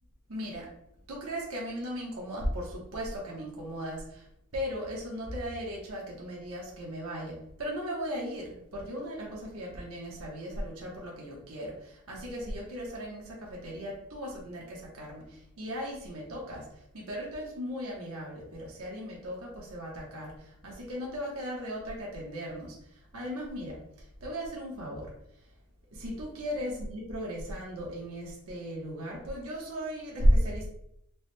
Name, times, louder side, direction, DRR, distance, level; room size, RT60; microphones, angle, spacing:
voice 1, 0.3-0.7 1.1-4.3 4.5-25.1 25.9-30.7, equal, 75° right, -3 dB, 1.0 m, -35 dB
4.6 x 2.2 x 3.2 m, 0.78 s
head